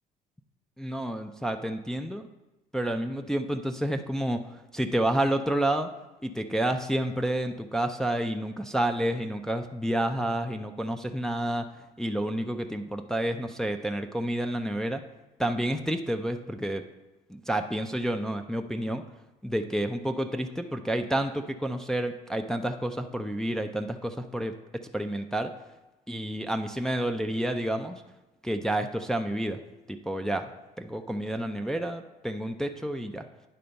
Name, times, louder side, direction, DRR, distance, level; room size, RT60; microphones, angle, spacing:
voice 1, 0.8-2.3 2.7-4.4 4.7-5.9 6.2-11.7 12.0-15.0 15.4-16.8 17.3-19.0 19.4-24.5 24.9-25.5 26.1-28.0 28.4-29.6 29.9-30.4 30.8-33.2, right 1 dB, 5° left, 4 dB, 0.4 m, -29 dB
9.9 x 3.4 x 5.3 m, 1.0 s
cardioid pair, 110°, 17 cm